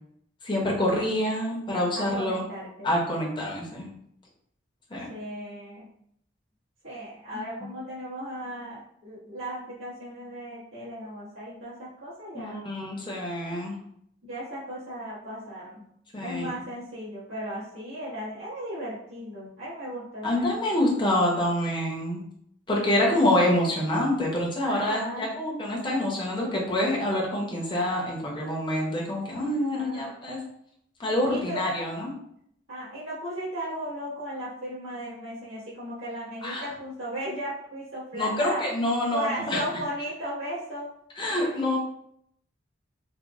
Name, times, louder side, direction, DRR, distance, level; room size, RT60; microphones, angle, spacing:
voice 1, 0.4-2.4 2.8-3.9 4.9-5.1 7.3-7.4 12.3-13.8 16.1-16.5 20.2-22.2 22.7-30.4 31.0-32.1 36.4-36.6 38.1-39.6 41.2-41.8, left 1 dB, 25° left, -3 dB, 0.7 m, -26 dB
voice 2, 1.9-2.9 5.1-5.9 6.8-12.6 14.2-15.9 16.2-20.7 24.6-25.3 29.7-30.1 31.3-31.7 32.7-38.6 39.1-40.9 41.3-41.5, equal, 85° right, -11 dB, 1.2 m, -36 dB
3.5 x 2.2 x 3.1 m, 0.72 s
head